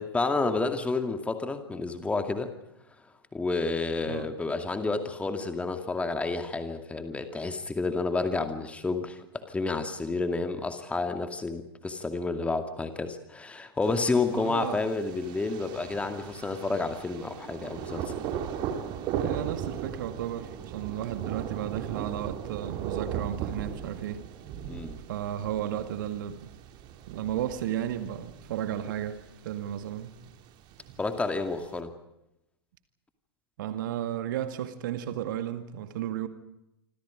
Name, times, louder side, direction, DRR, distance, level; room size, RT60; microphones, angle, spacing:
voice 1, 0.0-2.5 3.3-18.1 24.7-25.0 31.0-31.9, left 3 dB, 10° left, 2.3 m, -30 dB
Thunder, 13.8-31.8, right 9 dB, 35° right, 2.7 m, -38 dB
voice 2, 14.3-14.8 19.1-24.2 25.1-26.5 27.1-30.1 33.6-36.3, right 11 dB, 50° right, 2.1 m, -34 dB
27.0 x 26.5 x 5.1 m
figure-of-eight pair, 100°, 13 cm